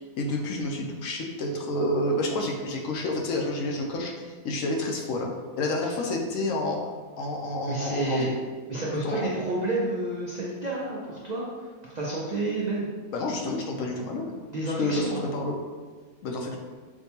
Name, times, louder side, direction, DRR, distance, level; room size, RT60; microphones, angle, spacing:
voice 1, 0.0-6.9 7.2-8.3 9.0-9.4 13.1-14.2 14.8-15.5 16.2-16.6, left 1 dB, 70° left, 0 dB, 0.9 m, -29 dB
voice 2, 7.7-8.3 8.7-11.5 11.8-12.9 14.5-15.2, right 2 dB, 75° right, -5 dB, 0.4 m, -30 dB
6.0 x 2.2 x 2.7 m, 1.5 s
omnidirectional pair, 1.5 m